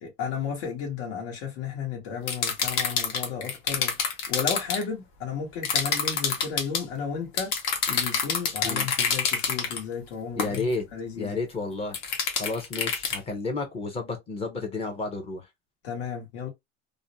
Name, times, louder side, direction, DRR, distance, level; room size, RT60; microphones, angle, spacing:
voice 1, 0.0-4.0 4.3-7.5 7.9-11.4 15.8-16.5, left 6 dB, 75° left, 1.0 m, -33 dB
sound 1, 2.3-4.8 5.6-6.8 7.4-9.8 10.4-10.6 11.9-13.2, left 6 dB, 55° left, 0.8 m, -27 dB
voice 2, 10.4-10.8 11.1-12.0 12.4-15.5, left 3 dB, 20° left, 0.5 m, -31 dB
2.4 x 2.0 x 2.7 m
cardioid pair, 160°, 33 cm